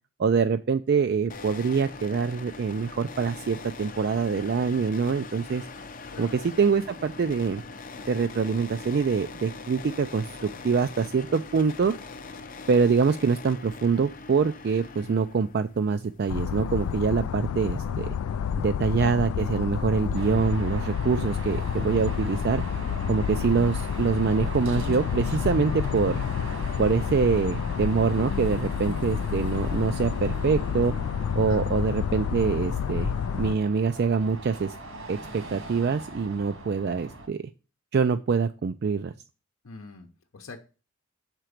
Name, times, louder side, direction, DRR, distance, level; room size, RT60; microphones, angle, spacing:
voice 1, 0.2-5.6 6.2-7.6 8.1-11.9 12.7-18.1 18.6-22.6 23.1-26.2 26.8-30.9 31.3-34.7 35.1-37.4 37.9-39.1, right 5 dB, 50° right, 9 dB, 0.3 m, -25 dB
sound 1, 1.3-17.3, left 4 dB, 40° left, 0.6 m, -42 dB
voice 2, 15.1-15.4 31.5-31.6 39.6-40.1 40.3-40.6, left 4 dB, 75° left, 3 dB, 0.8 m, -44 dB
sound 2, 16.3-33.5, left 7 dB, 90° left, 0.3 m, -29 dB
Car passing by / Traffic noise roadway noise / Engine, 20.1-37.3, right 1 dB, 70° right, 1.7 m, -40 dB
5.9 x 4.5 x 6.4 m, 0.34 s
head